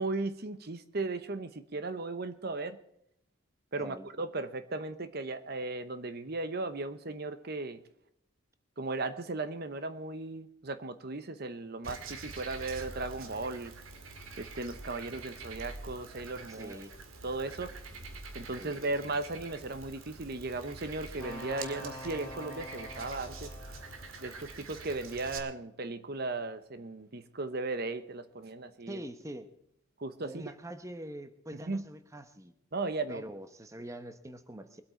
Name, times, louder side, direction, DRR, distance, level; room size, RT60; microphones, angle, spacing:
voice 1, 0.0-2.8 3.7-7.8 8.8-13.7 14.4-16.8 17.2-17.7 18.3-23.5 24.2-29.0 30.0-30.5 31.7-31.8 32.7-33.2, right 3 dB, 50° right, 11 dB, 0.9 m, -36 dB
voice 2, 3.8-4.1 16.5-16.9 18.6-18.7 28.9-29.5 30.2-32.5 33.1-34.8, right 1 dB, 15° right, 9 dB, 1.0 m, -44 dB
Frog, 11.8-25.4, right 3 dB, 85° right, 2.1 m, -46 dB
sound 1, 21.2-24.9, left 1 dB, 10° left, 3.0 m, -46 dB
23.0 x 8.6 x 4.4 m, 0.73 s
head